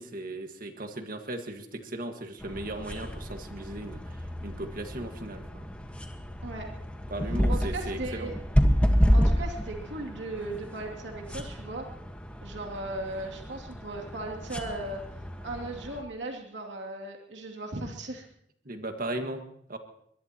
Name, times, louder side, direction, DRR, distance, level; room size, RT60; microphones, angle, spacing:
voice 1, 0.0-5.7 7.1-8.3 18.7-19.4 19.7-19.8, right 1 dB, 50° right, 5 dB, 1.7 m, -37 dB
sound 1, 2.4-16.0, equal, 5° left, 1.4 m, -30 dB
voice 2, 7.5-8.4 9.1-11.8 12.4-15.0 15.4-18.3, right 2 dB, 90° right, 0 dB, 2.7 m, -37 dB
22.5 x 21.0 x 3.0 m, 0.73 s
head